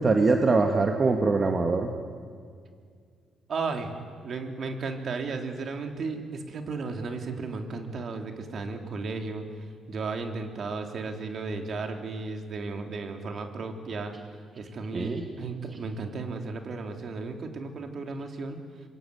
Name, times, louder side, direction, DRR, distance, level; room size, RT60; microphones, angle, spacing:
voice 1, 0.0-1.9 14.9-15.2, right 3 dB, 35° right, 4 dB, 2.1 m, -23 dB
voice 2, 3.5-4.0 4.2-9.4 9.9-14.1 14.6-18.6, right 4 dB, 55° right, 4 dB, 3.6 m, -34 dB
25.5 x 22.0 x 9.8 m, 2.1 s
cardioid pair, 90°, 0 cm